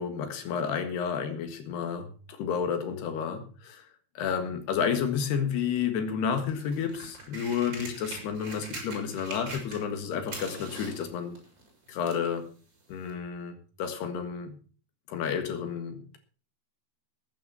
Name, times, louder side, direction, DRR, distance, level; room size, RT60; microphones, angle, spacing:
voice 1, 0.0-3.9 4.2-11.4 11.9-12.5 12.9-14.6 15.1-16.2, left 7 dB, 65° left, 8 dB, 3.5 m, -31 dB
sound 1, 6.5-10.0 10.2-12.3 13.1-13.2, right 2 dB, 25° right, 5.0 m, -42 dB
14.5 x 9.4 x 5.6 m, 0.39 s
omnidirectional pair, 5.6 m